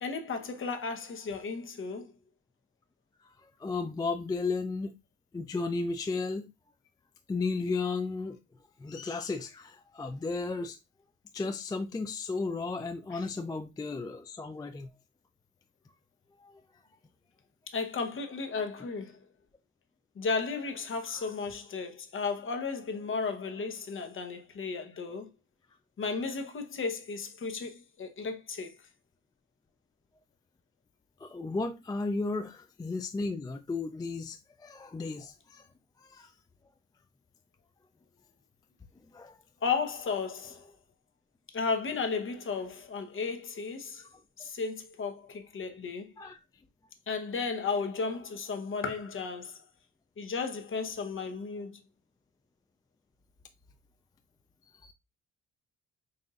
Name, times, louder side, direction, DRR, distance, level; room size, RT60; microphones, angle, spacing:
voice 1, 0.0-2.1 13.1-13.3 17.7-19.3 20.2-25.3 26.0-28.8 39.6-40.7 41.5-44.1 44.4-46.1 47.1-49.6 50.2-51.8, left 4 dB, 45° left, 0.9 m, -34 dB
voice 2, 3.4-4.9 5.3-6.5 7.3-8.4 8.8-10.8 11.3-14.9 16.4-16.6 21.1-21.2 31.2-35.7 36.0-36.3 39.1-39.4 46.2-46.4 54.8-54.9, left 3 dB, 15° left, 0.3 m, -34 dB
5.5 x 2.5 x 2.4 m
cardioid pair, 90°, 30 cm